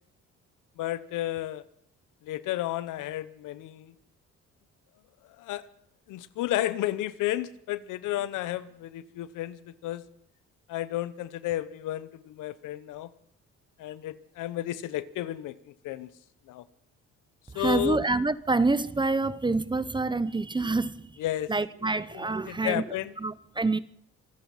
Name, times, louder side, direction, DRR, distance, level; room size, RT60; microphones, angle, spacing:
voice 1, 0.8-1.6 2.2-3.9 5.4-5.7 6.1-10.0 10.7-13.1 13.8-16.1 16.5-16.6 17.5-18.0 21.2-21.5 22.4-23.1, left 14 dB, 90° left, 0.9 m, -32 dB
voice 2, 17.5-21.2 21.5-22.8 23.2-23.8, right 3 dB, 15° right, 0.7 m, -27 dB
26.0 x 9.4 x 5.6 m
cardioid pair, 90°, 30 cm